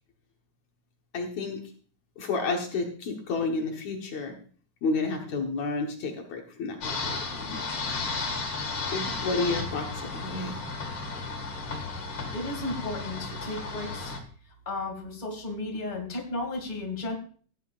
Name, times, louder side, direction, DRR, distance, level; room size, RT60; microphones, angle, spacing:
voice 1, 1.1-1.6 2.2-4.4 4.8-7.6 8.9-10.5, left 3 dB, 65° left, 1 dB, 2.6 m, -31 dB
sound 1, 6.8-14.2, left 3 dB, 45° left, 2.5 m, -34 dB
voice 2, 12.3-14.1 14.7-17.2, left 2 dB, 15° left, 2 dB, 2.3 m, -34 dB
16.0 x 10.5 x 2.5 m, 0.44 s
omnidirectional pair, 3.6 m